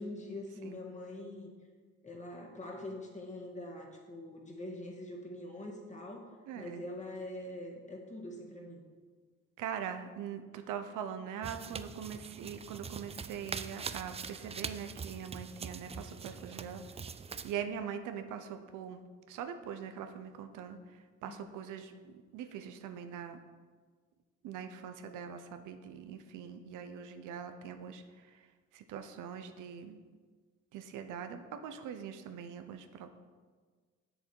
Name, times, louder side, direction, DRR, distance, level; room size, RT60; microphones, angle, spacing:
voice 1, 0.0-1.5 2.0-6.3 6.6-8.8 21.3-21.4, left 1 dB, 25° left, 0 dB, 1.7 m, -44 dB
voice 2, 6.5-6.8 9.6-16.8 17.4-19.0 19.3-20.8 21.2-23.4 24.4-28.0 28.7-30.0 30.7-33.1, right 8 dB, 90° right, 8 dB, 0.7 m, -42 dB
sound 1, 11.4-17.5, right 5 dB, 20° right, 0.3 m, -43 dB
7.4 x 6.9 x 4.5 m, 1.5 s
cardioid pair, 90°, 30 cm